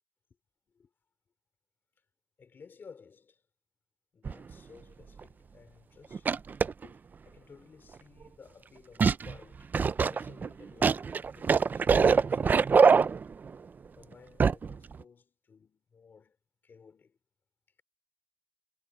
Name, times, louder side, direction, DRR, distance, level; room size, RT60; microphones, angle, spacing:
voice 1, 2.4-3.4 4.1-9.7 10.1-13.1 14.0-16.4 16.6-17.2, left 5 dB, 75° left, 3.5 m, -56 dB
sound 1, 4.3-4.5 5.2-5.3 6.1-6.9 9.0-9.3 9.7-13.5 14.4-14.7 15.0-15.1, right 5 dB, 55° right, 0.4 m, -24 dB
wide cardioid pair, 115°, 4 cm